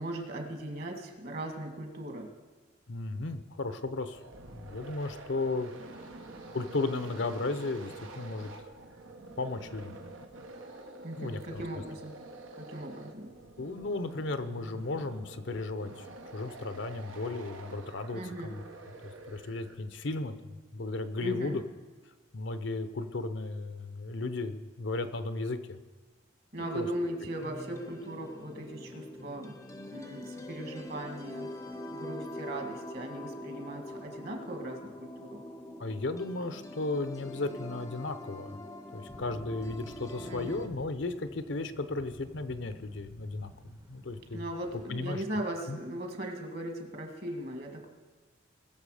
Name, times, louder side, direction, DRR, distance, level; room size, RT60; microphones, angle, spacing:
voice 1, 0.0-2.3 11.0-12.2 12.6-13.4 18.1-18.6 21.2-21.6 26.5-29.6 29.9-31.5 31.9-35.4 40.2-40.7 44.3-47.9, right 1 dB, 50° right, 3 dB, 2.0 m, -38 dB
voice 2, 2.9-4.2 4.5-5.7 6.5-8.5 9.4-9.9 11.2-11.6 13.6-16.1 16.3-18.6 19.3-21.6 22.3-25.8 26.6-26.9 35.8-38.6 38.9-44.4 44.9-45.2 45.7-45.8, left 3 dB, 65° left, 10 dB, 0.8 m, -35 dB
sound 1, 4.0-20.0, right 2 dB, 80° right, 1.3 m, -48 dB
sound 2, 26.7-40.7, left 1 dB, 15° left, 0.7 m, -44 dB
sound 3, 39.1-45.1, equal, 15° right, 0.8 m, -51 dB
20.5 x 7.0 x 5.0 m, 1.3 s
head